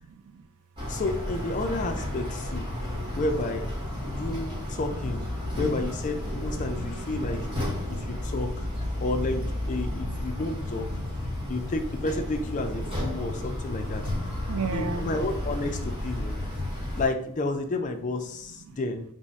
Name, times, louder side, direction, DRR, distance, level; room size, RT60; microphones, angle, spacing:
voice 1, 0.0-0.4 2.9-3.0 4.1-4.3 5.5-5.6 6.3-6.4 6.7-8.2 8.6-9.0 9.8-11.6 13.4-13.5 13.9-15.1 16.4-17.0 18.7-18.8, right 5 dB, 75° right, 11 dB, 0.3 m, -40 dB
sound 1, 0.8-17.1, left 1 dB, 20° right, 1.1 m, -32 dB
voice 2, 0.9-2.7 3.1-3.7 4.0-5.2 5.6-7.5 7.9-8.7 9.0-10.9 11.5-14.0 14.7-16.4 17.0-19.0, left 2 dB, 35° left, 6 dB, 0.4 m, -31 dB
3.4 x 2.1 x 4.0 m, 0.65 s
head